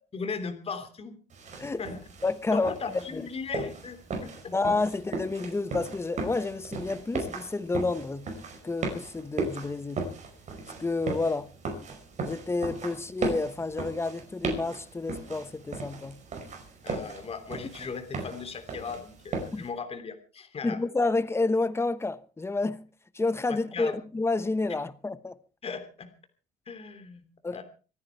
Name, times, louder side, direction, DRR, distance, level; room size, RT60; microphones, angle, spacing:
voice 1, 0.1-1.2 1.8-2.0 2.5-4.5 16.8-20.8 23.5-23.9 25.6-26.1 26.7-27.2 27.5-27.6, left 5 dB, 35° left, 3.2 m, -37 dB
sound 1, 1.3-19.7, right 3 dB, 45° right, 5.2 m, -37 dB
voice 2, 2.2-3.2 4.5-8.3 8.6-10.1 10.8-11.5 12.2-16.2 19.5-19.6 20.6-22.9 23.1-25.3 27.4-27.6, left 3 dB, 15° left, 1.1 m, -29 dB
25.5 x 9.8 x 4.6 m
cardioid pair, 110°, 17 cm